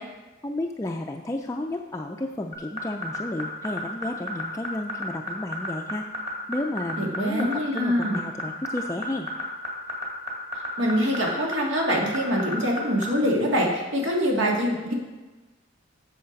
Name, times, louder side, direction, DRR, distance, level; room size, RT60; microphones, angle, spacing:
voice 1, 0.4-6.1 6.5-9.3, left 1 dB, 15° left, 2 dB, 0.4 m, -32 dB
sound 1, 2.5-13.1, left 1 dB, 35° right, 1.9 m, -31 dB
voice 2, 7.0-8.2 10.8-14.9, equal, 85° right, -1 dB, 1.8 m, -24 dB
8.0 x 6.5 x 5.2 m, 1.2 s
head